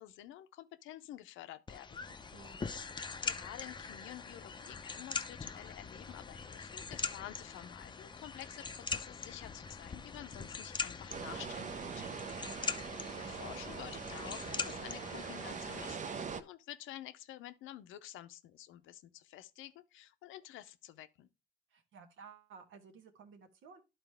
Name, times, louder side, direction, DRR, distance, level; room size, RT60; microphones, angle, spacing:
voice 1, 0.0-2.1 3.2-11.9 13.2-21.3, left 13 dB, 90° left, 0.6 m, -50 dB
sound 1, 1.7-15.9, left 5 dB, 25° left, 0.5 m, -42 dB
voice 2, 2.1-2.7 12.0-12.3 21.7-23.8, right 6 dB, 75° right, 1.4 m, -55 dB
sound 2, 11.1-16.4, right 6 dB, 40° right, 0.6 m, -42 dB
11.0 x 4.1 x 3.4 m
cardioid pair, 90°, 20 cm